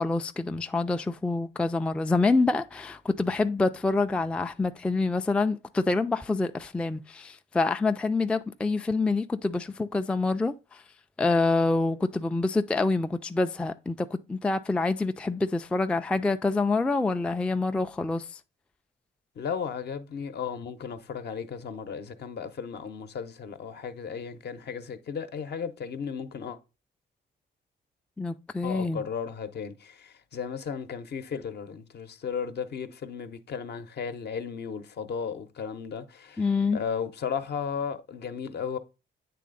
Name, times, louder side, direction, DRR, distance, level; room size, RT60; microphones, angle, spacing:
voice 1, 0.0-10.8 11.2-18.4 28.2-29.0 36.4-36.8, left 3 dB, 5° left, 0.3 m, -26 dB
voice 2, 19.4-26.6 28.6-36.4 36.7-38.8, left 6 dB, 55° left, 0.8 m, -35 dB
8.4 x 3.4 x 3.8 m
cardioid pair, 90°, 20 cm